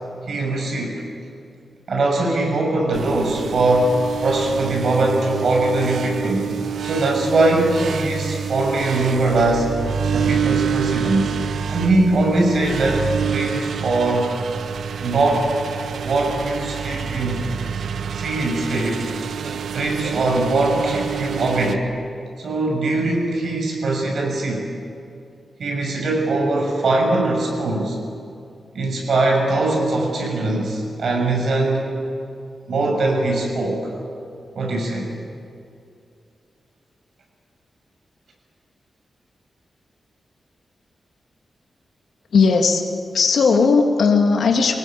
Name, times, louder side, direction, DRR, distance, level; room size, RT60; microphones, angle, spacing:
voice 1, 0.3-1.0 1.9-6.5 6.8-11.4 11.7-14.3 15.0-15.5 15.9-17.4 17.7-17.8 18.1-19.1 19.7-21.9 22.4-24.7 25.6-28.0 28.7-31.9 32.7-33.9 34.5-35.1, right 2 dB, 65° right, 1 dB, 6.5 m, -21 dB
sound 1, 2.9-21.8, right 7 dB, 85° right, 0.8 m, -27 dB
voice 2, 42.3-42.8 43.1-44.8, left 4 dB, 80° left, 3 dB, 2.6 m, -16 dB
25.5 x 18.5 x 9.2 m, 2.4 s
wide cardioid pair, 145°, 0 cm